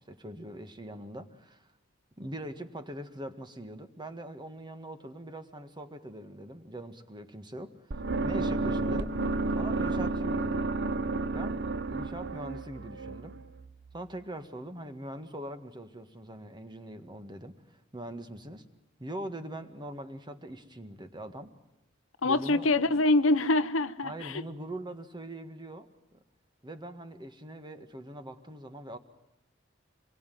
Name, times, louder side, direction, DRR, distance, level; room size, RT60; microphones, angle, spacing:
voice 1, 0.0-1.7 2.2-7.7 8.2-9.1 9.6-10.7 11.3-13.4 13.9-18.6 19.0-21.5 22.2-23.0 24.0-25.9 26.6-29.0, right 1 dB, 20° right, 8 dB, 1.8 m, -42 dB
sound 1, 7.9-14.0, right 3 dB, 60° right, 1.0 m, -31 dB
voice 2, 22.2-24.4, left 2 dB, 70° left, 12 dB, 1.0 m, -25 dB
26.0 x 22.5 x 9.4 m, 0.90 s
head